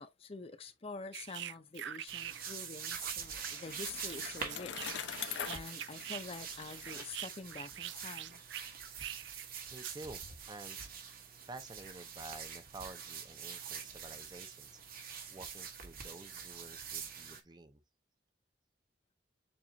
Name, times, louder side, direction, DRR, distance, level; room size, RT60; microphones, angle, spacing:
voice 1, 0.0-8.4, left 3 dB, 35° left, 0.6 m, -47 dB
sound 1, 1.1-2.6 2.8-6.2 6.5-9.4 9.8-10.0, right 11 dB, 75° right, 0.4 m, -45 dB
sound 2, 2.1-17.4, right 7 dB, 55° right, 1.1 m, -45 dB
Bicycle, 2.8-7.9, left 8 dB, 70° left, 0.7 m, -44 dB
voice 2, 9.7-10.8 11.5-17.8, right 2 dB, 25° right, 0.6 m, -51 dB
7.2 x 2.5 x 2.8 m
head